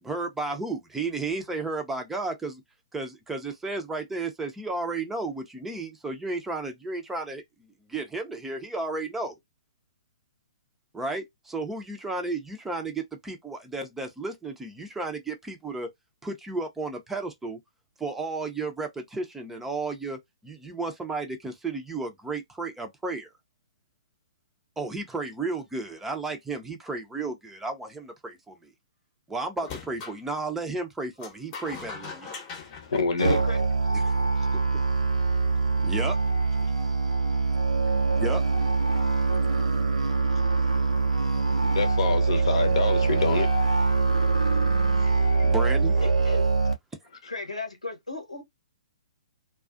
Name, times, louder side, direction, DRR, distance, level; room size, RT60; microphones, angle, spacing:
voice 1, 0.0-2.6 2.9-7.4 7.9-9.4 10.9-15.9 16.2-17.6 18.0-23.3 24.8-28.7 29.3-32.3 33.9-34.1 35.8-36.2 38.2-38.4 45.4-45.9, right 3 dB, 5° right, 0.5 m, -33 dB
sound 1, 29.6-30.2 31.2-33.9, left 5 dB, 30° left, 0.9 m, -41 dB
voice 2, 32.6-33.4 41.7-43.5 45.0-45.5, left 5 dB, 60° left, 0.7 m, -27 dB
Musical instrument, 33.2-46.7, right 3 dB, 85° right, 0.6 m, -23 dB
voice 3, 46.0-46.4 47.3-48.4, left 3 dB, 85° left, 0.9 m, -35 dB
2.4 x 2.3 x 2.4 m
figure-of-eight pair, 120°, 3 cm